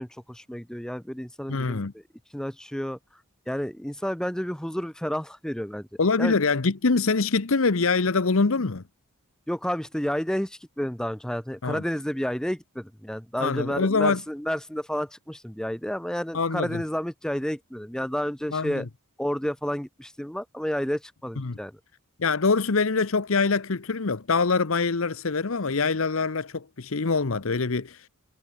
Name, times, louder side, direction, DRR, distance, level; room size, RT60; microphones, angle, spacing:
voice 1, 0.0-1.8 2.3-3.0 3.5-5.9 6.2-6.4 9.5-18.9 19.2-21.7, equal, 5° left, 0.7 m, -30 dB
voice 2, 1.5-1.9 6.0-8.8 11.6-11.8 13.4-14.2 16.3-16.8 18.5-18.8 21.4-21.6 22.2-28.1, left 4 dB, 65° left, 0.9 m, -24 dB
head